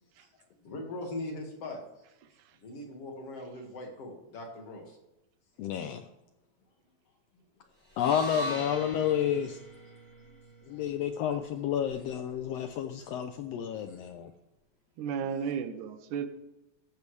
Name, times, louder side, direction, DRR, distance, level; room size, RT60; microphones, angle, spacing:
voice 1, 0.2-1.8 2.6-5.0 9.9-10.0 10.3-10.4 10.7-10.9 13.9-14.1 15.1-15.5, left 2 dB, 55° left, 2 dB, 2.8 m, -41 dB
voice 2, 5.6-6.0 8.0-9.6 10.7-14.3, left 9 dB, 75° left, 8 dB, 1.5 m, -30 dB
sound 1, 7.9-12.1, left 1 dB, 5° left, 4.4 m, -41 dB
voice 3, 15.0-16.3, right 7 dB, 90° right, 10 dB, 2.3 m, -33 dB
14.0 x 11.5 x 3.3 m, 0.96 s
omnidirectional pair, 3.3 m